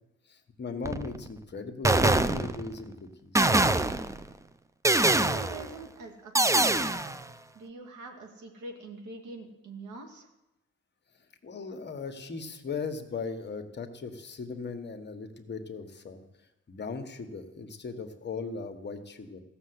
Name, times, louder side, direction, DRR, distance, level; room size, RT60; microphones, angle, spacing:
voice 1, 0.3-3.5 11.4-16.2 16.7-19.4, left 4 dB, 35° left, 6 dB, 1.5 m, -38 dB
sound 1, 0.8-1.3 1.8-2.8 3.3-4.2 4.8-5.7 6.3-7.2, right 2 dB, 10° right, 0.5 m, -24 dB
voice 2, 5.0-7.1 7.5-10.3, right 2 dB, 75° right, 2 dB, 2.5 m, -44 dB
15.0 x 6.8 x 8.0 m, 0.95 s
cardioid pair, 90°, 30 cm